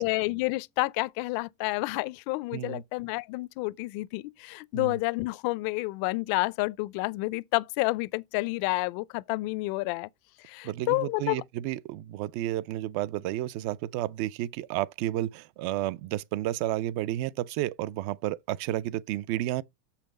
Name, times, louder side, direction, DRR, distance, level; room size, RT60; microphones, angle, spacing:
voice 1, 0.0-10.1 10.4-11.4, left 23 dB, 50° left, 0.6 m, -29 dB
voice 2, 2.5-2.8 4.7-5.0 10.6-19.6, right 14 dB, 50° right, 0.6 m, -31 dB
6.6 x 5.8 x 5.2 m
supercardioid pair, 135°, 47 cm